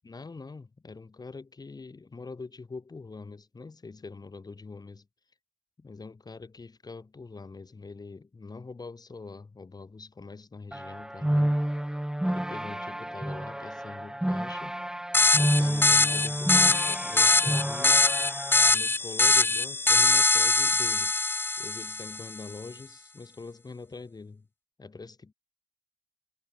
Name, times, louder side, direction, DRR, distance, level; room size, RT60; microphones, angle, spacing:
voice 1, 0.0-5.1 5.8-11.6 12.2-14.8 15.4-18.1 18.7-21.1 21.6-24.5 24.8-25.3, left 4 dB, 40° left, 2.8 m, -44 dB
sound 1, 10.7-18.7, right 1 dB, 5° right, 1.1 m, -30 dB
sound 2, 15.1-22.3, left 3 dB, 20° left, 0.4 m, -23 dB
supercardioid pair, 40°, 10 cm